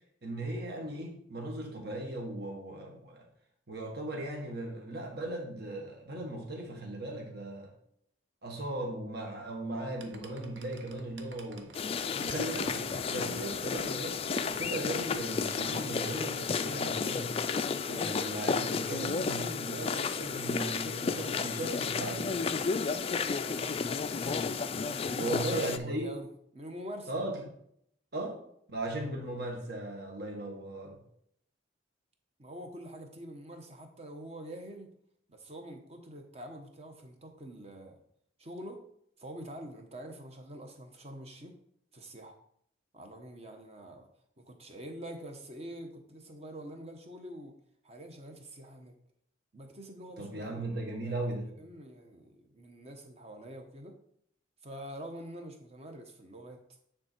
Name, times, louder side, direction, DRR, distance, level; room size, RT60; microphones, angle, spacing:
voice 1, 0.2-3.2 3.7-7.7 8.4-11.8 12.2-17.4 17.8-22.3 25.1-26.1 27.1-27.4 28.1-28.4 28.7-30.9 50.2-51.5, right 1 dB, 55° right, 0 dB, 1.5 m, -37 dB
sound 1, 10.0-15.7, right 3 dB, 70° right, 0.9 m, -55 dB
sound 2, 11.7-25.8, left 5 dB, 30° left, 0.3 m, -32 dB
voice 2, 23.2-24.0 25.1-26.3 26.5-27.1 32.4-34.9 35.3-38.0 38.4-38.8 39.2-41.6 41.9-42.4 42.9-44.1 44.4-47.5 47.8-48.9 49.5-50.6 50.9-54.0 54.6-56.6, right 1 dB, 35° right, 4 dB, 1.0 m, -45 dB
9.6 x 3.7 x 4.5 m, 0.68 s
head